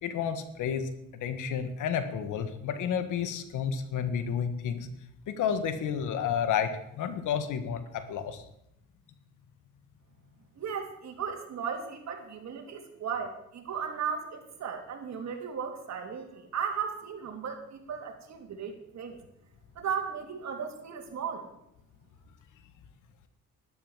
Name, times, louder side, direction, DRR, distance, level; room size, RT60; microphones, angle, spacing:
voice 1, 0.0-4.9 5.3-8.4, left 7 dB, 85° left, 10 dB, 1.8 m, -31 dB
voice 2, 10.6-19.2 19.8-21.5, right 7 dB, 65° right, 4 dB, 3.2 m, -36 dB
12.5 x 11.5 x 7.3 m, 0.79 s
cardioid pair, 90°, 30 cm